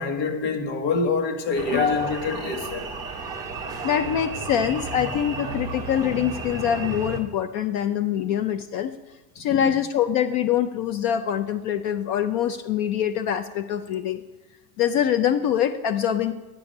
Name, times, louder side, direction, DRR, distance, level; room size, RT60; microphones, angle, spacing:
voice 1, 0.0-2.9 9.5-9.6, left 4 dB, 85° left, 2.0 m, -26 dB
sound 1, 1.6-7.2, right 3 dB, 10° right, 0.5 m, -33 dB
voice 2, 1.7-2.1 3.8-8.9 9.4-14.2 14.8-16.3, left 9 dB, 50° left, 0.5 m, -24 dB
9.7 x 7.0 x 9.0 m
cardioid pair, 180°, 49 cm